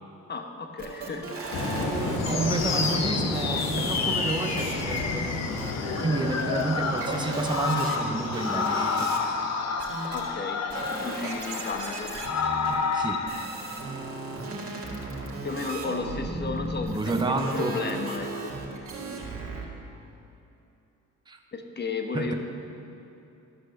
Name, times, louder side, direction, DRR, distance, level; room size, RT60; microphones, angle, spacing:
voice 1, 0.3-1.5 2.0-2.1 3.8-3.9 10.1-12.1 15.4-18.6 21.5-22.3, left 4 dB, 35° left, 5 dB, 1.1 m, -34 dB
sound 1, 0.8-2.9 3.3-6.6 7.0-9.2 9.8-10.3 10.7-19.6, right 3 dB, 50° right, 2.1 m, -36 dB
sound 2, 1.5-9.8, left 2 dB, 85° left, 1.3 m, -33 dB
voice 2, 1.9-5.4 5.9-9.1 12.9-13.2 14.5-14.6 16.9-17.7 21.3-21.4 22.1-22.3, right 2 dB, 15° right, 3 dB, 0.9 m, -30 dB
sound 3, 2.2-13.5, left 5 dB, 60° left, 0.9 m, -30 dB
13.0 x 6.1 x 6.6 m, 2.9 s
cardioid pair, 90°, 30 cm